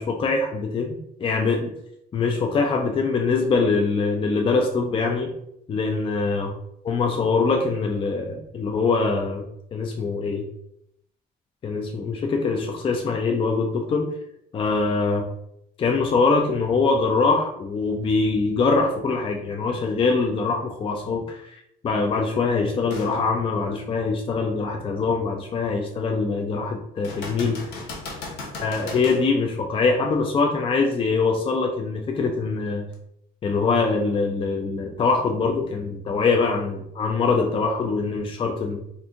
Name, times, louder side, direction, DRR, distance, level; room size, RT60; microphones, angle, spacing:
voice 1, 0.0-1.7 2.1-5.3 5.7-6.5 6.8-9.4 9.7-10.4 11.6-14.1 14.5-15.2 15.8-27.6 28.6-32.8 33.4-38.8, left 4 dB, 30° left, 2 dB, 0.4 m, -23 dB
sound 1, 22.9-23.2 23.7-23.8 27.0-29.2 32.9-33.0, left 3 dB, 80° left, 0.9 m, -36 dB
2.6 x 2.6 x 3.6 m, 0.75 s
cardioid pair, 110°, 17 cm